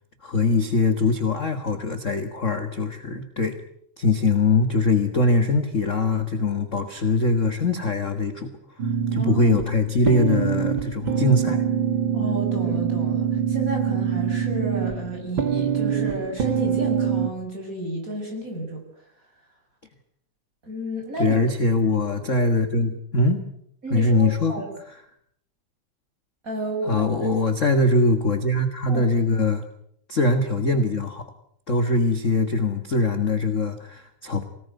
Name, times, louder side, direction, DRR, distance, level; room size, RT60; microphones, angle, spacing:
voice 1, 0.2-3.6 4.0-8.5 9.1-11.6 21.2-23.5 23.9-24.6 26.9-29.6 30.1-31.2 31.7-34.4, left 2 dB, 30° left, 7 dB, 1.5 m, -22 dB
sound 1, 8.8-17.3, right 7 dB, 45° right, 2.3 m, -24 dB
voice 2, 9.0-9.4 12.1-18.8 20.6-21.4 23.8-24.7 26.4-27.3 28.9-29.1, right 1 dB, 25° right, 2 dB, 7.8 m, -32 dB
25.5 x 19.0 x 9.4 m, 0.72 s
omnidirectional pair, 3.6 m